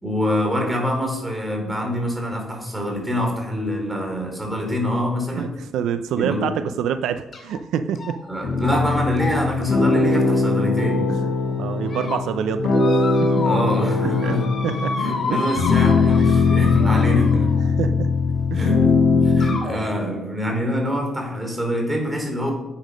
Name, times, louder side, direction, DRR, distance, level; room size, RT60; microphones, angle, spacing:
voice 1, 0.0-5.5 6.1-6.5 8.3-11.1 13.4-14.5 14.9-17.6 18.5-22.5, equal, 10° right, 1 dB, 4.4 m, -25 dB
voice 2, 5.3-8.2 11.1-12.7 13.2-13.4 14.0-14.4 14.6-15.0 15.3-15.5 16.3-16.5 17.8-18.1 18.5-18.7, right 8 dB, 80° right, 10 dB, 0.6 m, -27 dB
sound 1, 7.3-7.6 8.0-8.3 8.6-8.8 9.2-11.1 11.6-12.2 12.8-13.8 14.0-17.6 18.6-18.7 19.4-19.7, left 3 dB, 45° left, 3.1 m, -31 dB
sound 2, 8.4-19.5, left 4 dB, 75° left, 4.5 m, -20 dB
11.5 x 8.6 x 5.2 m, 0.93 s
cardioid pair, 90°, 0 cm